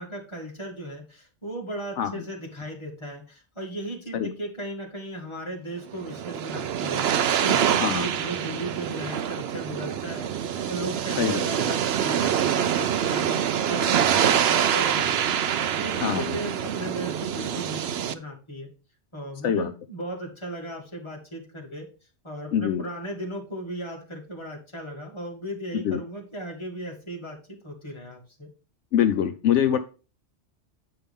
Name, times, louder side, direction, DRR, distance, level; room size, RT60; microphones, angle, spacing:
voice 1, 0.0-7.0 7.4-13.4 13.7-18.7 19.1-21.9 22.2-28.5, right 1 dB, 25° left, -1 dB, 2.3 m, -36 dB
sound 1, 5.9-18.1, right 9 dB, 65° right, 0.8 m, -25 dB
voice 2, 16.0-16.4 19.4-19.7 22.5-22.8 25.8-26.0 28.9-29.8, left 9 dB, 80° left, 9 dB, 0.9 m, -24 dB
8.8 x 5.6 x 3.5 m, 0.34 s
omnidirectional pair, 1.2 m